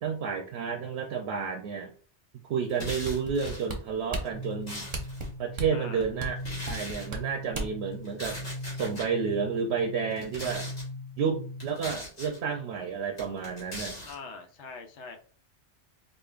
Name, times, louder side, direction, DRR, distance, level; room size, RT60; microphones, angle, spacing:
voice 1, 0.0-1.9 2.5-4.8 5.4-6.4 6.7-8.4 8.7-10.7 11.2-14.0, right 6 dB, 70° right, 3 dB, 0.8 m, -31 dB
sound 1, 2.7-3.7 4.3-5.3 6.4-7.1 8.0-9.1 10.1-10.9 11.6-12.4 13.2-14.2, left 1 dB, 65° left, 1.8 m, -40 dB
sound 2, 3.0-7.9 8.3-8.4, right 2 dB, 40° right, 0.8 m, -35 dB
sound 3, 4.3-11.9, left 1 dB, 10° right, 0.5 m, -41 dB
voice 2, 5.7-6.1 14.0-15.2, left 4 dB, 85° left, 4 dB, 1.0 m, -43 dB
5.0 x 2.3 x 2.4 m, 0.40 s
omnidirectional pair, 1.2 m